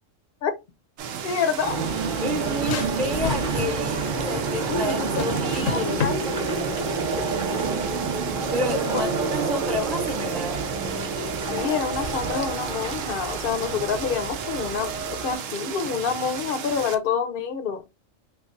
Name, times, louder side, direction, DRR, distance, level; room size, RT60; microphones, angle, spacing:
sound 1, 1.0-16.9, right 8 dB, 85° right, 1.0 m, -34 dB
voice 1, 1.2-1.8 4.7-5.4 5.7-6.1 8.9-9.0 11.5-17.8, left 6 dB, 60° left, 0.6 m, -27 dB
sound 2, 1.6-15.4, right 3 dB, 45° right, 1.0 m, -29 dB
voice 2, 2.2-6.0 8.5-10.6, left 1 dB, ahead, 0.4 m, -30 dB
sound 3, 2.6-3.9 5.2-6.2, left 7 dB, 80° left, 1.0 m, -30 dB
3.5 x 3.1 x 2.5 m
omnidirectional pair, 1.3 m